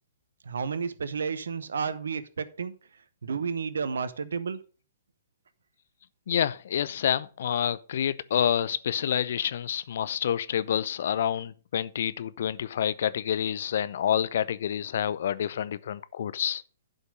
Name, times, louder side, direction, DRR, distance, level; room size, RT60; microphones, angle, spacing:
voice 1, 0.5-2.7 3.2-4.6, right 5 dB, 65° right, 0.9 m, -31 dB
voice 2, 6.3-16.6, left 9 dB, 55° left, 0.6 m, -28 dB
11.5 x 5.3 x 5.4 m
figure-of-eight pair, 120°, 0 cm